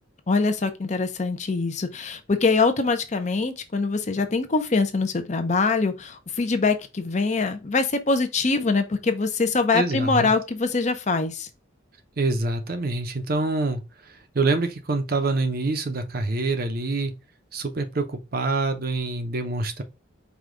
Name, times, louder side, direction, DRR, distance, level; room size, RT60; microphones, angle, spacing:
voice 1, 0.3-11.5, left 3 dB, 35° left, 0.6 m, -23 dB
voice 2, 9.7-10.3 12.2-13.8 14.3-17.1 17.5-19.8, right 3 dB, 50° right, 0.6 m, -26 dB
4.9 x 2.3 x 3.7 m
head